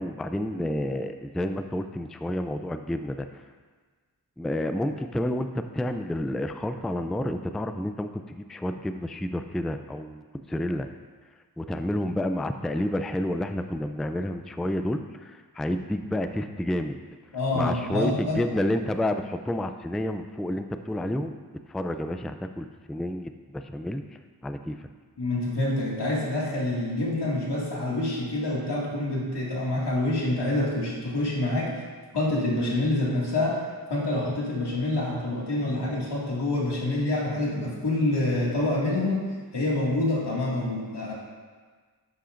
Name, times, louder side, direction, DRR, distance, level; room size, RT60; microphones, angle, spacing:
voice 1, 0.0-3.4 4.4-10.2 10.5-10.9 11.6-17.0 17.5-21.3 21.7-24.0 24.4-24.9, left 1 dB, ahead, 8 dB, 0.3 m, -30 dB
voice 2, 17.3-18.4 25.2-31.8 32.1-33.6 33.9-39.3 39.5-41.1, left 2 dB, 90° left, -4 dB, 2.2 m, -27 dB
11.5 x 8.6 x 2.5 m, 1.5 s
wide cardioid pair, 80°, 40 cm